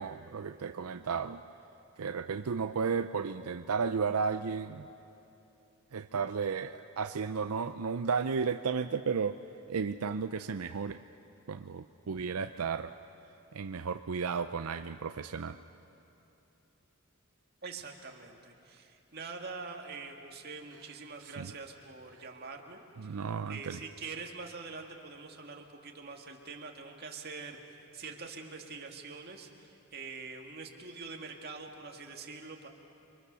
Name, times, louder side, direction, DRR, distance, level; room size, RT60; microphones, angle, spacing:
voice 1, 0.0-1.4 2.0-4.9 5.9-9.3 9.7-11.0 11.5-12.9 13.5-15.6 21.2-21.5 23.0-23.8, right 5 dB, 80° right, 9 dB, 0.5 m, -33 dB
voice 2, 17.6-23.2 23.5-27.6 27.9-32.7, right 4 dB, 45° right, 2 dB, 2.2 m, -44 dB
30.0 x 24.0 x 6.9 m, 3.0 s
head